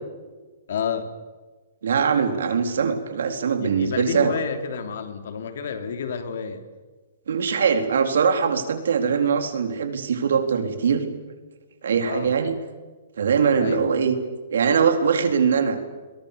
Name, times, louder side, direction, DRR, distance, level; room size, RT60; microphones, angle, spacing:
voice 1, 0.7-1.1 3.6-6.6 12.0-12.3 13.6-13.9, left 6 dB, 60° left, 8 dB, 3.3 m, -30 dB
voice 2, 1.8-4.3 7.3-11.1 11.8-12.5 13.2-14.2 14.5-15.8, right 6 dB, 80° right, 7 dB, 4.0 m, -22 dB
29.5 x 22.5 x 7.0 m, 1.3 s
hypercardioid pair, 175°, 0 cm